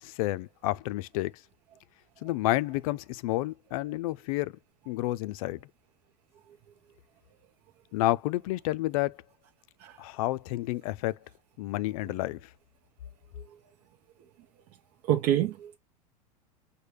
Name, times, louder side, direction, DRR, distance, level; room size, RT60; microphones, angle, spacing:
voice 1, 0.0-1.3 2.2-4.5 4.9-5.6 7.9-9.2 10.0-11.2 11.6-12.4, left 17 dB, 65° left, 0.4 m, -30 dB
voice 2, 15.1-15.8, right 12 dB, 50° right, 0.6 m, -26 dB
6.5 x 2.2 x 3.1 m
hypercardioid pair, 95°, 20 cm